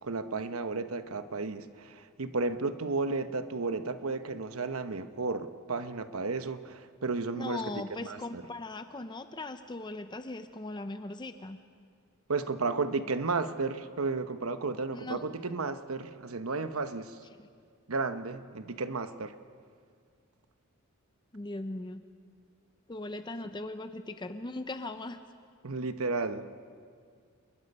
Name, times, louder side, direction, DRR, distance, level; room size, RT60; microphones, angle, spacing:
voice 1, 0.0-7.6 8.0-8.4 12.3-17.2 17.9-19.4 25.6-26.7, right 3 dB, 80° right, 1.0 m, -33 dB
voice 2, 7.3-11.6 14.9-15.2 21.3-22.0 22.9-25.2, left 2 dB, 20° left, 0.6 m, -39 dB
27.5 x 21.5 x 5.5 m
head